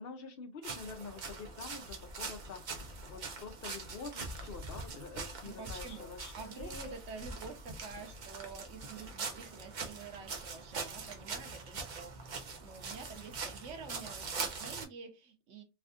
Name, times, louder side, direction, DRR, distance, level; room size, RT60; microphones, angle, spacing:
voice 1, 0.0-7.0, left 4 dB, 60° left, 0.9 m, -47 dB
sound 1, 0.6-14.8, right 4 dB, 50° right, 0.7 m, -43 dB
voice 2, 5.4-15.6, right 5 dB, 90° right, 1.1 m, -48 dB
3.3 x 2.5 x 2.4 m
omnidirectional pair, 1.2 m